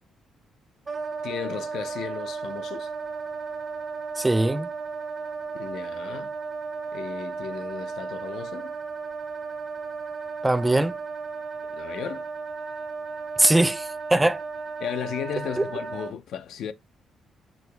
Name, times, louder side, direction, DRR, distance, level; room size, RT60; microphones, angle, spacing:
Wind instrument woodwind instrument, 0.9-16.1, right 4 dB, 30° right, 0.9 m, -34 dB
voice 1, 1.2-2.9 5.5-6.3 6.9-8.7 11.7-12.3 14.8-16.7, left 9 dB, 75° left, 0.5 m, -35 dB
voice 2, 4.2-4.7 10.4-10.9 13.4-14.4 15.6-15.7, right 1 dB, 10° right, 0.4 m, -21 dB
6.0 x 2.0 x 3.3 m
cardioid pair, 90°, 0 cm